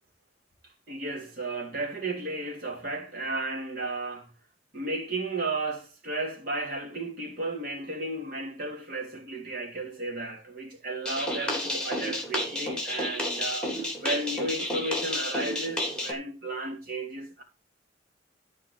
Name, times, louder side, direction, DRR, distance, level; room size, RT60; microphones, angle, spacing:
voice 1, 0.9-4.3 4.7-17.4, right 2 dB, 50° right, 3.2 m, -34 dB
sound 1, 11.0-16.1, left 1 dB, 5° left, 3.7 m, -31 dB
14.0 x 4.9 x 6.5 m
head